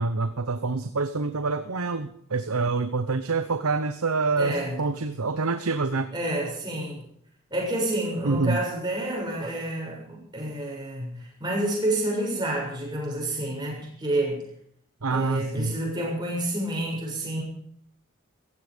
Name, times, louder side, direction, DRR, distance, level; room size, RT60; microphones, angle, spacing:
voice 1, 0.0-6.1 8.2-8.6 15.0-15.7, right 3 dB, 90° right, 11 dB, 0.9 m, -26 dB
voice 2, 4.4-4.8 6.1-7.0 7.5-14.4 15.1-17.4, right 1 dB, 20° right, -2 dB, 6.9 m, -29 dB
16.0 x 15.5 x 5.2 m, 0.67 s
head